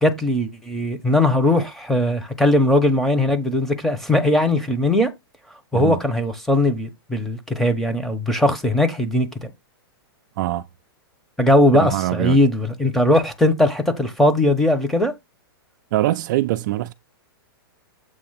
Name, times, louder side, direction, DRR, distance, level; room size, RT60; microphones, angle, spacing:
voice 1, 0.0-5.1 5.7-9.5 11.4-15.1, left 1 dB, ahead, 1.0 m, -19 dB
voice 2, 11.8-12.4 15.9-16.9, right 15 dB, 50° right, 0.4 m, -23 dB
7.7 x 2.9 x 5.7 m
hypercardioid pair, 145°, 13 cm